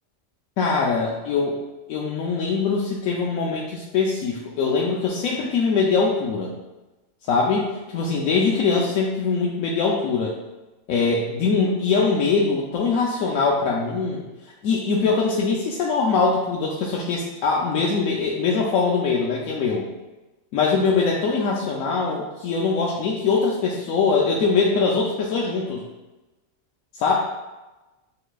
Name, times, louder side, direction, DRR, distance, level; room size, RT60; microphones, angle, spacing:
voice 1, 0.6-1.6 1.9-6.5 7.2-10.4 10.9-14.2 14.6-19.9 20.5-25.8 27.0-27.1, left 4 dB, 85° left, -3 dB, 1.0 m, -22 dB
6.6 x 3.2 x 2.3 m, 1.1 s
omnidirectional pair, 1.4 m